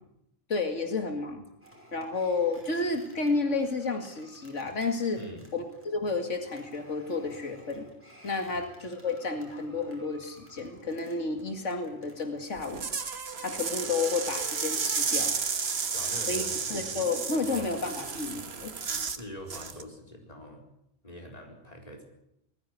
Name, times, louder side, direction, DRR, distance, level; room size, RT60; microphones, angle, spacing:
voice 1, 0.5-1.4 1.9-5.2 5.5-7.9 8.2-12.9 13.4-15.3 16.3-16.4 16.7-18.8, left 3 dB, 90° left, 5 dB, 2.5 m, -31 dB
sound 1, 1.6-13.2, equal, 10° right, 5.6 m, -56 dB
voice 2, 5.2-5.5 8.5-8.7 15.9-17.0 19.2-20.6 21.0-22.0, equal, 35° left, 1 dB, 4.5 m, -44 dB
sound 2, 12.6-19.2 19.5-19.8, right 5 dB, 60° right, 1.5 m, -32 dB
20.0 x 15.5 x 9.7 m, 0.80 s
omnidirectional pair, 1.2 m